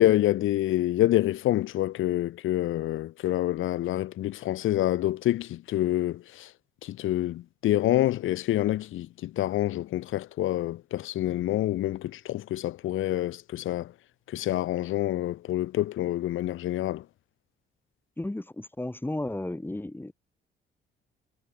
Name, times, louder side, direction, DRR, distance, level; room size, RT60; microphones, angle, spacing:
voice 1, 0.0-6.5 6.8-13.9 14.3-17.0, left 14 dB, 85° left, 7.5 m, -27 dB
voice 2, 18.2-20.1, left 1 dB, 10° left, 5.5 m, -33 dB
cardioid pair, 90°, 20 cm